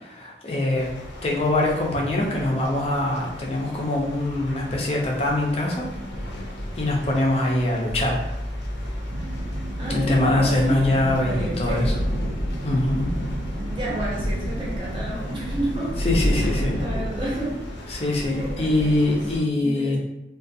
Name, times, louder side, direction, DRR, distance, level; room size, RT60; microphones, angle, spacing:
voice 1, 0.0-0.9 1.2-5.8 6.8-8.2 9.9-11.9 12.6-13.1 16.0-16.7 17.9-20.0, left 1 dB, 35° left, -2 dB, 0.5 m, -23 dB
sound 1, 0.7-19.4, equal, 85° left, 0.6 m, -32 dB
sound 2, 8.0-17.9, equal, 75° right, 0.8 m, -37 dB
sound 3, 9.1-17.1, right 2 dB, 55° right, 0.3 m, -36 dB
voice 2, 9.8-11.9 13.5-16.0 16.3-19.2 19.6-20.0, right 1 dB, 25° right, -6 dB, 0.7 m, -31 dB
2.4 x 2.2 x 2.5 m, 0.93 s
head